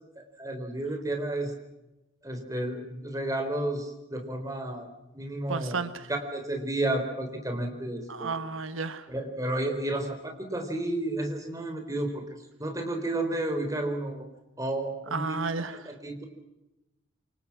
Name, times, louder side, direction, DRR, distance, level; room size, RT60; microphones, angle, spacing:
voice 1, 0.2-1.6 2.2-4.9 5.1-5.8 6.1-8.3 9.1-12.2 12.6-14.3 14.6-15.5 15.9-16.2, right 1 dB, 15° right, 4 dB, 4.1 m, -32 dB
voice 2, 5.5-6.1 8.1-9.1 15.1-15.9, right 4 dB, 90° right, 11 dB, 1.4 m, -32 dB
28.0 x 24.5 x 6.0 m, 0.97 s
head